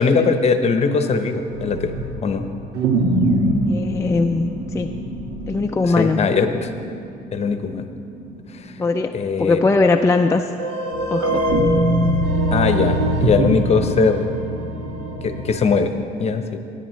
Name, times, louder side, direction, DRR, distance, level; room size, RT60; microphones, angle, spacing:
voice 1, 0.0-1.9 2.2-2.5 5.8-6.7 7.3-7.8 8.5-8.7 9.1-9.6 12.5-14.3 15.2-15.9 16.2-16.6, left 5 dB, 35° left, 8 dB, 0.8 m, -20 dB
sound 1, 1.5-8.9 9.2-9.3 9.9-10.0 10.5-15.8, right 1 dB, 80° right, 1.4 m, -23 dB
voice 2, 3.7-4.9 5.5-6.3 8.8-9.1 9.4-10.5 11.1-11.4, left 3 dB, 15° left, 3 dB, 0.3 m, -20 dB
17.5 x 9.9 x 3.1 m, 2.5 s
cardioid pair, 115°, 18 cm